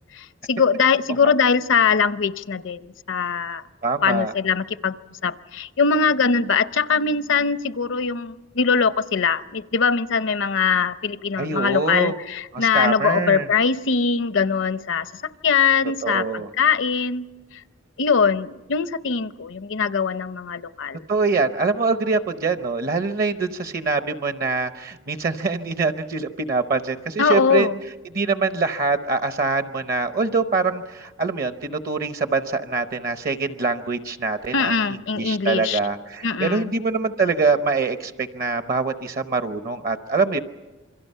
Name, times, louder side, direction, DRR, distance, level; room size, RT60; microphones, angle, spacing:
voice 1, 0.1-3.6 4.0-5.0 5.2-15.1 15.4-17.3 18.0-21.0 27.2-27.7 34.5-35.8 36.2-36.7, left 5 dB, 70° left, 14 dB, 0.7 m, -22 dB
voice 2, 3.8-4.3 11.4-12.1 12.5-13.5 16.0-16.5 21.1-27.7 28.1-40.4, right 4 dB, 50° right, 9 dB, 0.8 m, -24 dB
28.0 x 23.5 x 5.6 m, 1.1 s
head